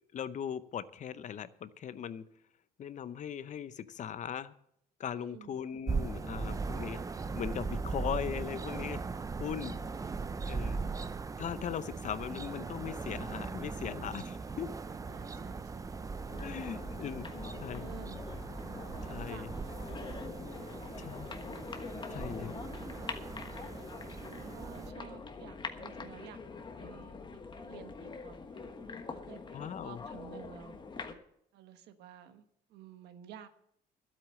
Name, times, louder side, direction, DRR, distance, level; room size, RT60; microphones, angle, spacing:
voice 1, 0.1-2.2 2.8-4.5 5.0-7.0 7.3-9.0 9.4-9.8 10.5-10.8 11.4-14.7 16.4-17.3 17.6-17.8 19.1-19.5 21.0-21.3 22.1-22.5 29.5-30.0, left 8 dB, 45° left, 14 dB, 0.7 m, -39 dB
voice 2, 5.1-5.6 15.1-15.9 16.3-16.6 17.5-18.3 19.0-19.5 19.9-21.0 24.3-26.4 26.7-28.7 29.0-30.8 31.5-33.5, right 9 dB, 80° right, 10 dB, 1.2 m, -53 dB
sound 1, 5.9-24.9, right 4 dB, 20° right, 0.6 m, -39 dB
sound 2, 16.3-31.1, left 4 dB, 25° left, 1.3 m, -44 dB
12.0 x 8.5 x 7.6 m, 0.72 s
cardioid pair, 110°, 17 cm